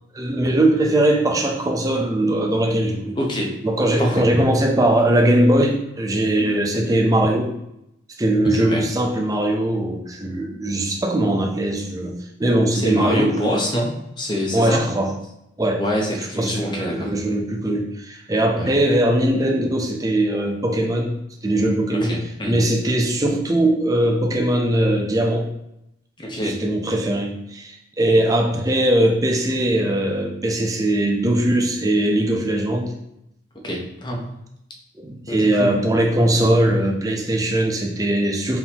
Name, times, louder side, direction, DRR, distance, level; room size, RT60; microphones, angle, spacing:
voice 1, 0.1-3.2 3.6-7.5 8.2-12.1 12.4-13.3 14.5-15.1 15.6-15.8 16.4-22.2 22.5-25.5 26.4-32.9 35.0-38.6, right 1 dB, 20° right, 1 dB, 0.5 m, -20 dB
voice 2, 3.2-3.5 4.0-4.3 8.5-8.9 12.7-14.8 15.8-17.1 18.5-18.7 21.9-22.6 26.2-26.6 33.6-34.3 35.3-35.7, equal, 25° left, 0 dB, 0.7 m, -25 dB
4.2 x 3.7 x 2.9 m, 0.83 s
head